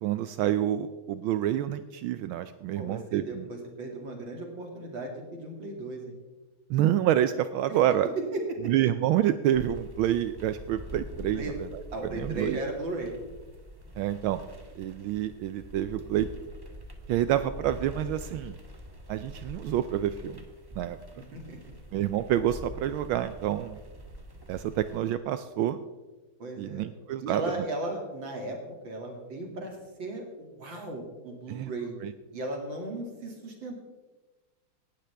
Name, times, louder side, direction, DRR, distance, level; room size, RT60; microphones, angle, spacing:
voice 1, 0.0-3.5 6.7-8.1 8.7-11.4 12.1-12.6 14.0-14.4 14.8-16.3 17.1-18.6 19.1-20.4 20.8-21.0 21.9-23.8 24.5-25.8 26.6-27.4 31.5-31.7 32.0-32.1, right 11 dB, 80° right, 11 dB, 1.3 m, -28 dB
voice 2, 2.7-6.2 8.2-8.7 11.3-11.5 11.9-13.1 20.7-20.9 21.2-21.6 26.4-26.9 27.2-28.6 28.8-31.9 32.3-33.7, right 2 dB, 60° right, 1 dB, 3.1 m, -36 dB
sound 1, 9.5-25.0, equal, 15° right, 0.9 m, -45 dB
18.0 x 12.5 x 3.4 m, 1.2 s
omnidirectional pair, 2.3 m